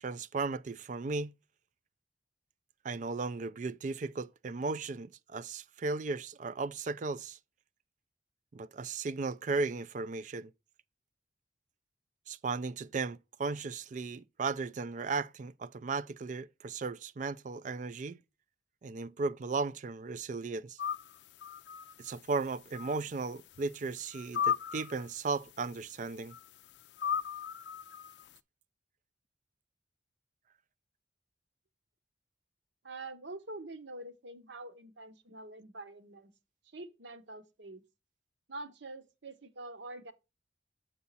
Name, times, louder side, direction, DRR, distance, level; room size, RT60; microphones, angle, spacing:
voice 1, 0.0-1.3 2.8-7.4 8.5-10.5 12.3-18.2 18.8-20.8 22.0-26.4, right 4 dB, 40° right, 0.4 m, -36 dB
sound 1, 20.8-21.1 21.4-22.1 22.7-23.0 23.6-23.7 24.1-25.0 26.3-26.4 27.0-28.2, left 8 dB, 65° left, 0.4 m, -35 dB
voice 2, 32.8-36.3 36.6-37.8 38.5-40.1, right 2 dB, 70° right, 1.1 m, -45 dB
8.4 x 4.7 x 4.0 m
head